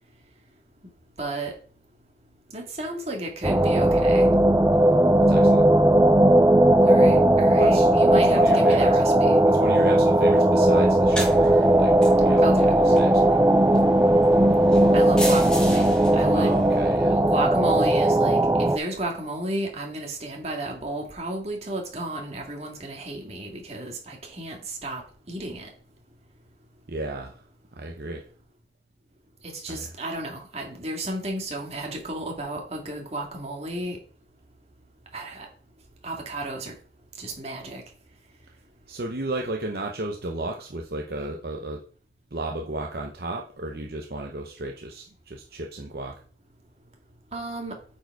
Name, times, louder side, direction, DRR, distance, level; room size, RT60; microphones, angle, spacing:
voice 1, 1.2-1.5 2.5-4.3 6.9-9.4 12.4-12.7 14.9-15.9 16.1-16.6 17.1-25.7 29.4-34.0 35.1-35.5 36.0-36.7 37.2-37.8 47.3-47.8, right 1 dB, 35° right, 1 dB, 1.9 m, -33 dB
sound 1, 3.4-18.8, right 1 dB, 15° right, 0.4 m, -18 dB
voice 2, 5.3-5.6 7.5-8.9 9.4-12.5 12.8-13.4 16.3-17.2 26.9-28.3 29.7-29.9 38.9-41.8 42.3-46.2, right 2 dB, 60° right, 1 dB, 0.8 m, -33 dB
sound 2, 10.9-17.3, equal, 5° left, 1.8 m, -36 dB
8.5 x 4.8 x 4.7 m, 0.43 s
head